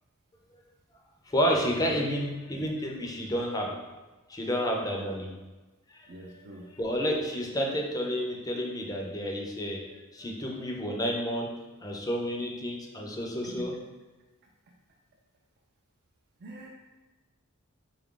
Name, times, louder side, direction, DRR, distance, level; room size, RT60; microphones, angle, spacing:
voice 1, 1.3-3.8 4.3-5.3 5.9-6.4 6.8-9.8 10.1-11.5 11.8-13.7, equal, 15° left, 0 dB, 0.5 m, -30 dB
voice 2, 6.1-6.7 13.4-13.7 16.4-16.7, right 1 dB, 45° right, -1 dB, 0.4 m, -43 dB
3.7 x 2.4 x 3.7 m, 1.2 s
head